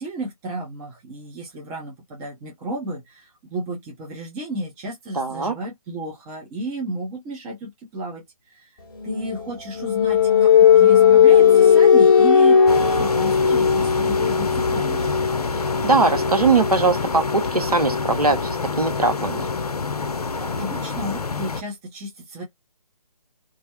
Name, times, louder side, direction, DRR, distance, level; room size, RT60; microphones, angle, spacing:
voice 1, 0.0-8.2 8.6-8.7 9.0-15.1 20.4-22.4, right 1 dB, 10° right, 0.5 m, -33 dB
voice 2, 5.1-5.6 15.8-19.5, right 3 dB, 85° right, 0.8 m, -20 dB
sound 1, 9.0-20.5, left 7 dB, 35° left, 0.6 m, -18 dB
sound 2, 12.7-21.6, left 4 dB, 90° left, 0.4 m, -28 dB
2.3 x 2.0 x 2.8 m
figure-of-eight pair, 145°, 19 cm